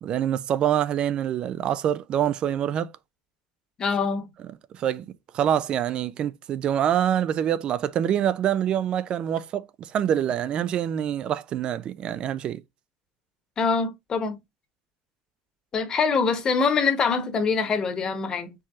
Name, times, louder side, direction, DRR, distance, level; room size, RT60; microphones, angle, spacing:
voice 1, 0.0-2.9 4.7-5.1 5.3-12.6, right 10 dB, 45° right, 0.4 m, -25 dB
voice 2, 3.8-4.3 13.6-14.4 15.7-18.5, left 5 dB, 30° left, 1.2 m, -24 dB
4.7 x 3.1 x 3.5 m
supercardioid pair, 110°, 2 cm